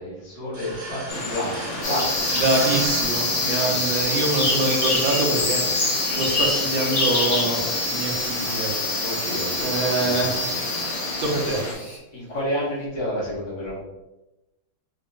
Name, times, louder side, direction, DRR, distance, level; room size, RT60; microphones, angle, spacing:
voice 1, 0.0-2.3 3.5-3.8 9.0-10.2 12.1-13.8, equal, 65° left, -8 dB, 2.0 m, -30 dB
sound 1, 0.5-4.1, right 1 dB, 55° right, 1.4 m, -36 dB
sound 2, 1.1-11.7, left 2 dB, 85° left, 0.4 m, -29 dB
sound 3, 1.8-12.0, left 2 dB, 45° left, 1.2 m, -27 dB
voice 2, 2.3-5.6 6.2-7.6 7.9-8.7 9.6-10.9 11.2-11.6, right 2 dB, 80° right, -1 dB, 1.5 m, -25 dB
4.5 x 2.8 x 2.5 m, 1.0 s
omnidirectional pair, 2.2 m